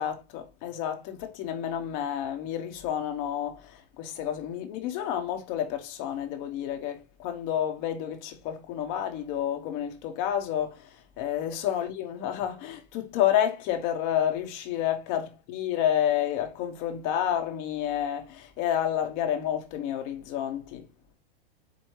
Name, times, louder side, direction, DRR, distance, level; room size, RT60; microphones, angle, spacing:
voice 1, 0.0-20.9, left 10 dB, 25° left, 0.7 m, -30 dB
4.5 x 2.6 x 4.5 m
supercardioid pair, 165°, 30 cm